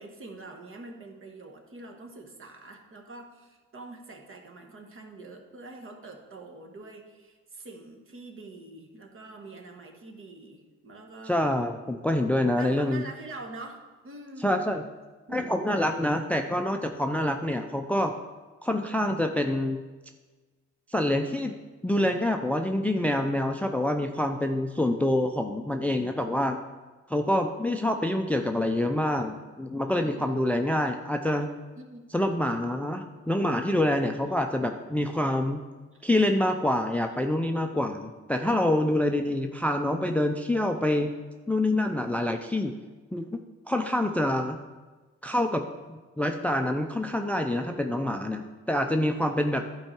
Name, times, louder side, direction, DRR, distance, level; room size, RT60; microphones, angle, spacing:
voice 1, 0.0-11.6 12.4-14.5 15.3-15.7 30.0-30.5 31.8-32.3 35.9-36.0, right 2 dB, 45° right, 3 dB, 1.4 m, -45 dB
voice 2, 11.3-13.0 14.4-14.8 15.3-18.1 18.6-19.8 20.9-21.5 21.8-26.6 27.1-31.5 32.1-35.6 36.0-41.1 41.5-42.7 43.1-43.4 43.7-44.6 45.2-45.6 45.9-49.6, left 1 dB, 5° left, 5 dB, 0.4 m, -26 dB
11.0 x 4.7 x 4.5 m, 1.3 s
cardioid pair, 90°, 30 cm